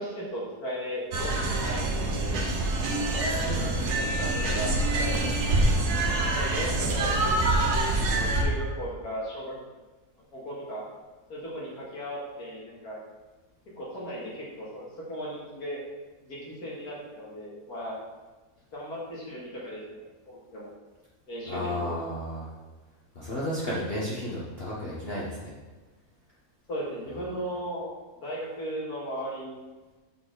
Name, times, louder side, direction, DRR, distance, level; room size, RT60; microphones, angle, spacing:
voice 1, 0.0-2.4 3.9-5.2 6.2-9.5 10.3-10.8 11.3-13.0 13.7-14.8 15.1-15.8 16.2-18.0 18.7-20.7 21.3-21.9 26.7-29.7, equal, 80° left, -5 dB, 2.4 m, -37 dB
sound 1, 1.1-8.4, right 2 dB, 85° right, 1.5 m, -26 dB
voice 2, 3.1-4.0 5.5-5.7 21.5-22.5 23.1-25.6, equal, 40° left, -7 dB, 1.2 m, -33 dB
6.5 x 5.7 x 3.8 m, 1.2 s
omnidirectional pair, 1.6 m